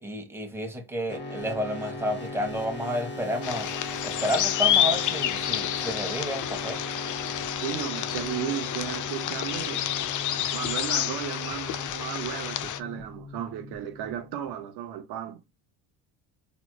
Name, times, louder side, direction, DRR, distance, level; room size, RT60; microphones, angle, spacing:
voice 1, 0.0-3.7 4.0-6.8, equal, 5° right, 1.4 m, -31 dB
sound 1, 1.1-14.6, left 2 dB, 25° left, 1.2 m, -38 dB
sound 2, 3.4-12.8, left 11 dB, 50° left, 0.6 m, -29 dB
voice 2, 7.6-10.0 10.5-15.4, right 10 dB, 70° right, 0.7 m, -34 dB
4.1 x 3.1 x 2.2 m
supercardioid pair, 85°, 41 cm